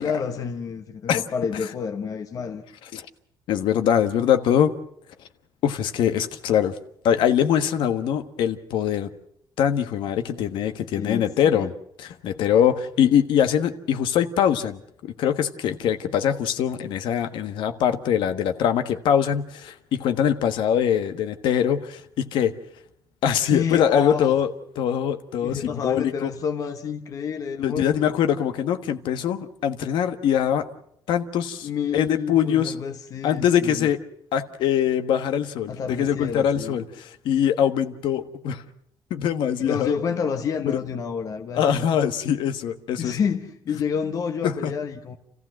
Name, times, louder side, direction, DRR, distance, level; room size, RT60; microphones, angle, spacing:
voice 1, 0.0-2.6 10.9-11.7 23.4-24.4 25.4-28.1 31.6-33.9 35.7-36.8 39.6-41.9 43.0-45.2, left 6 dB, 45° left, 1.2 m, -29 dB
voice 2, 3.5-4.7 5.6-6.8 7.0-9.1 9.6-11.7 12.0-22.5 23.2-24.5 24.7-26.3 27.6-30.7 31.1-32.7 33.2-34.0 34.3-38.6 39.1-39.9 41.5-43.2 44.4-44.7, left 9 dB, 75° left, 1.4 m, -23 dB
29.5 x 15.0 x 7.7 m
cardioid pair, 160°, 8 cm